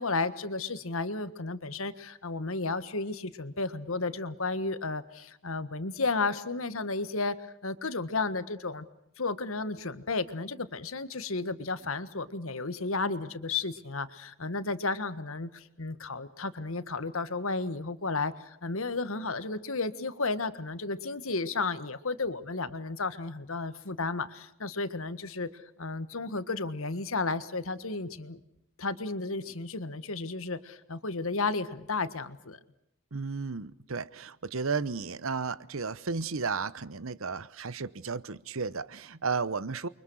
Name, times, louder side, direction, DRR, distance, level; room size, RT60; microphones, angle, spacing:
voice 1, 0.0-7.3 7.6-8.8 9.2-28.4 28.8-32.6, left 3 dB, 75° left, 12 dB, 1.6 m, -33 dB
voice 2, 33.1-39.9, right 4 dB, 70° right, 17 dB, 0.9 m, -33 dB
29.5 x 24.0 x 6.4 m, 0.78 s
head